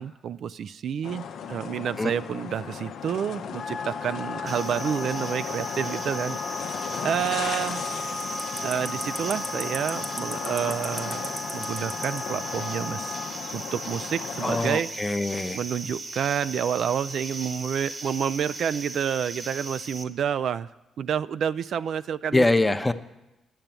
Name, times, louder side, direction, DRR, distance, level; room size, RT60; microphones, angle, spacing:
voice 1, 0.0-6.4 7.0-7.9 8.6-13.2 13.5-14.9 15.5-20.7 21.0-22.4, right 8 dB, 70° right, 14 dB, 0.3 m, -29 dB
sound 1, 1.0-14.7, left 7 dB, 75° left, 0.7 m, -36 dB
Wind instrument woodwind instrument, 3.4-13.3, left 4 dB, 40° left, 1.4 m, -37 dB
sound 2, 4.5-20.0, right 2 dB, 40° right, 1.2 m, -37 dB
voice 2, 14.4-15.6 22.3-22.9, left 2 dB, 20° left, 9 dB, 0.7 m, -23 dB
10.5 x 6.8 x 8.8 m, 1.0 s
supercardioid pair, 65°, 0 cm